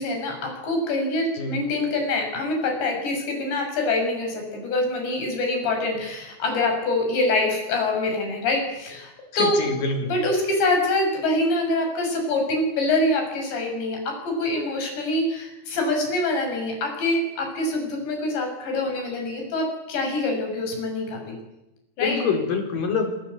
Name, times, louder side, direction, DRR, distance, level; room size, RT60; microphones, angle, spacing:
voice 1, 0.0-9.6 10.1-21.4 22.0-22.2, left 2 dB, 80° left, 3 dB, 8.8 m, -25 dB
voice 2, 9.4-10.1 22.0-23.1, left 5 dB, 55° left, 5 dB, 5.7 m, -25 dB
26.5 x 26.0 x 8.3 m, 0.96 s
omnidirectional pair, 5.0 m